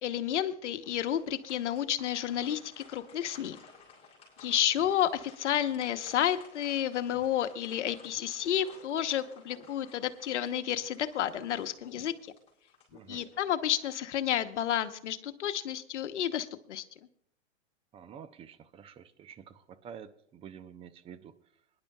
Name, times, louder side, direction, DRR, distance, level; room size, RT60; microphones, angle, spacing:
voice 1, 0.0-3.6 4.4-12.1 13.1-16.8, left 10 dB, 75° left, 9 dB, 1.0 m, -31 dB
sound 1, 0.8-13.5 13.9-14.1 14.7-15.2, left 5 dB, 15° left, 4.7 m, -56 dB
sound 2, 4.7-4.9 5.7-7.3 8.1-9.6 10.5-12.0 12.9-14.2, left 9 dB, 40° left, 2.2 m, -57 dB
voice 2, 12.9-13.2 17.9-21.4, right 8 dB, 15° right, 13 dB, 0.5 m, -49 dB
25.5 x 10.5 x 2.3 m, 0.66 s
hypercardioid pair, 120°, 36 cm